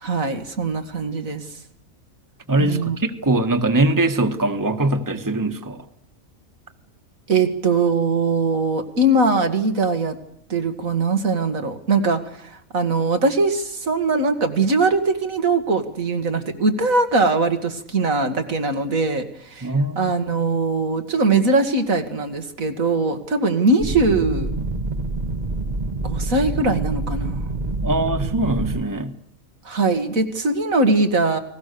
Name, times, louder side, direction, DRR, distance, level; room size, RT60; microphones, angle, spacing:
voice 1, 0.0-1.4 2.6-3.0 7.3-10.2 10.5-24.5 26.0-27.5 29.6-31.4, right 3 dB, 75° right, 6 dB, 2.5 m, -21 dB
voice 2, 2.5-5.8 19.6-20.1 27.8-29.1, right 2 dB, 15° right, 7 dB, 1.5 m, -22 dB
sound 1, 23.8-28.8, right 2 dB, 35° right, 1.4 m, -26 dB
30.0 x 20.5 x 6.9 m, 0.70 s
omnidirectional pair, 1.4 m